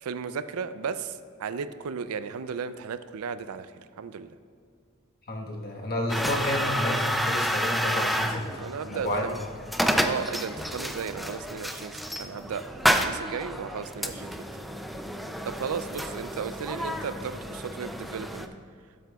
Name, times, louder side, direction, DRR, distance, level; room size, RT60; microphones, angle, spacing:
voice 1, 0.0-4.3 8.5-9.4 10.0-14.4 15.4-18.5, right 6 dB, 90° right, 12 dB, 0.4 m, -35 dB
voice 2, 5.3-8.6 8.9-9.2, left 1 dB, 45° left, 0 dB, 1.3 m, -30 dB
sound 1, 6.1-18.5, equal, ahead, 0.3 m, -30 dB
12.5 x 7.8 x 2.3 m, 2.3 s
head